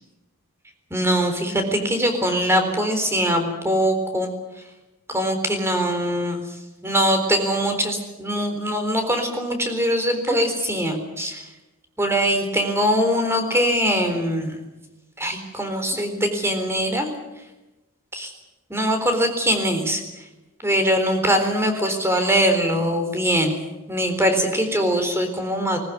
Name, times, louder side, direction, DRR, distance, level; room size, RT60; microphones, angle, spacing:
voice 1, 0.9-4.3 5.1-6.5 6.8-11.4 12.0-14.6 15.2-17.1 18.1-18.3 18.7-20.0 20.6-23.6 23.9-25.8, equal, 10° right, 6 dB, 4.0 m, -22 dB
20.5 x 19.5 x 9.4 m, 1.0 s
head